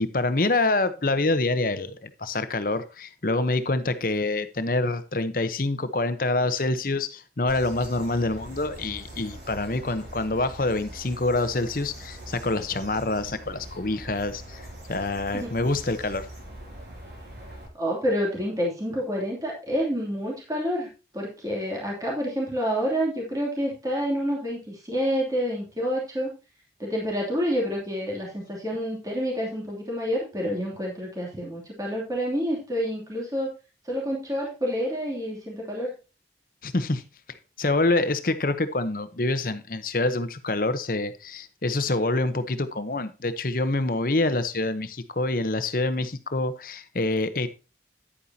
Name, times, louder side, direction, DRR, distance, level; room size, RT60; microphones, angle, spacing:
voice 1, 0.0-14.6 14.9-16.3 36.6-37.0 37.3-47.5, left 2 dB, 50° left, 0.9 m, -26 dB
sound 1, 7.5-17.7, right 1 dB, 75° right, 6.3 m, -42 dB
voice 2, 17.7-20.9 21.1-26.3 26.8-33.5 33.8-35.9, equal, 20° right, 2.8 m, -28 dB
10.0 x 9.2 x 2.8 m
head